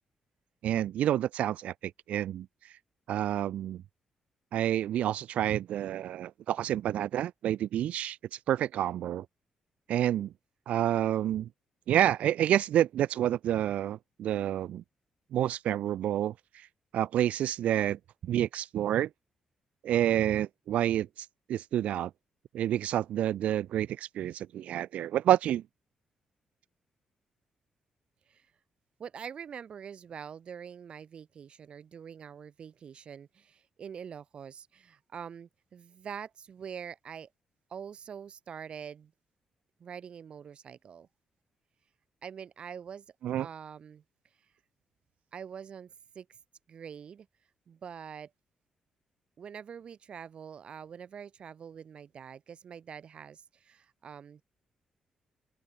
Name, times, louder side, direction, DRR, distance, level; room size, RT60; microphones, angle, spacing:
voice 1, 0.6-2.5 3.1-3.8 4.5-8.2 8.5-9.2 9.9-10.3 10.7-11.5 11.9-14.8 15.3-16.3 16.9-19.1 19.8-21.1 21.5-22.1 22.5-25.6 43.2-43.5, right 11 dB, 80° right, 0.9 m, -28 dB
voice 2, 29.0-37.3 37.7-39.1 39.8-41.1 42.2-43.0 43.4-44.0 45.3-46.4 46.7-47.3 47.7-48.3 49.4-54.4, right 7 dB, 50° right, 2.8 m, -45 dB
open air
cardioid pair, 115°, 2 cm